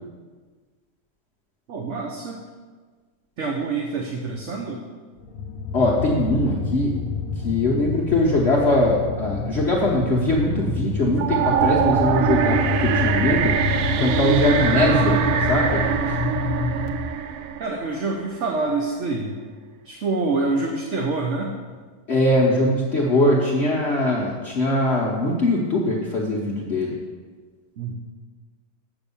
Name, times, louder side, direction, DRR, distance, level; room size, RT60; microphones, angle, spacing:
voice 1, 1.7-2.4 3.4-4.8 17.6-19.4 19.8-21.6 27.8-27.9, right 3 dB, 55° right, 0 dB, 1.1 m, -26 dB
sound 1, 5.2-16.9, left 5 dB, 65° left, 1.1 m, -28 dB
voice 2, 5.7-7.0 7.4-13.5 14.0-15.2 15.5-16.2 22.1-26.9, left 1 dB, 45° left, -4 dB, 1.2 m, -21 dB
sound 2, 11.2-18.3, right 8 dB, 70° right, 0.9 m, -23 dB
8.2 x 5.9 x 7.0 m, 1.5 s
omnidirectional pair, 1.8 m